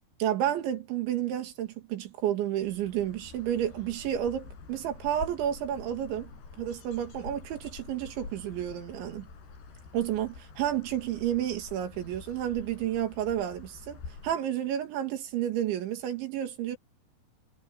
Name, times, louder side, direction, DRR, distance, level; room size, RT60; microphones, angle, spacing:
voice 1, 0.2-6.3 6.6-9.3 9.9-16.8, right 11 dB, 90° right, 4.7 m, -31 dB
sound 1, 2.6-14.4, left 4 dB, 65° left, 9.1 m, -47 dB
omnidirectional pair, 5.1 m